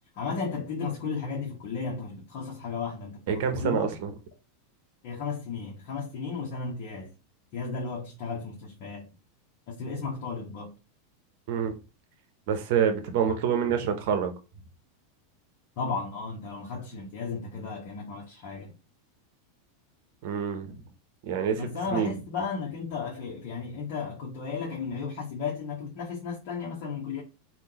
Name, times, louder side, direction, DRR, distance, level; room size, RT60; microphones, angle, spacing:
voice 1, 0.1-3.9 5.0-7.1 7.5-9.1 9.7-10.7 15.8-18.7 21.6-27.2, left 5 dB, 50° left, 1.2 m, -34 dB
voice 2, 3.3-4.1 11.5-11.7 12.5-14.3 20.2-20.8 21.2-22.1, right 7 dB, 55° right, 0.8 m, -27 dB
3.5 x 2.5 x 2.9 m
figure-of-eight pair, 90°, 0 cm